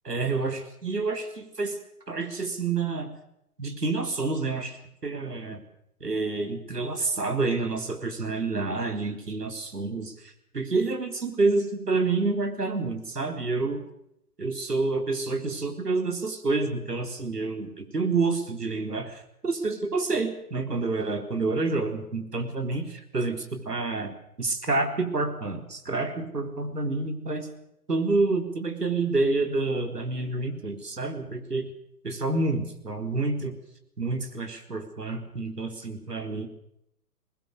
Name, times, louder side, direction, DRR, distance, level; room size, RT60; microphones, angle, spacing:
voice 1, 0.0-1.8 2.1-3.1 3.6-5.6 6.0-13.8 14.4-27.5 27.9-31.7 32.0-33.6 34.0-36.5, right 3 dB, 90° right, 6 dB, 4.2 m, -28 dB
22.5 x 20.0 x 6.7 m, 0.77 s
figure-of-eight pair, 130°, 46 cm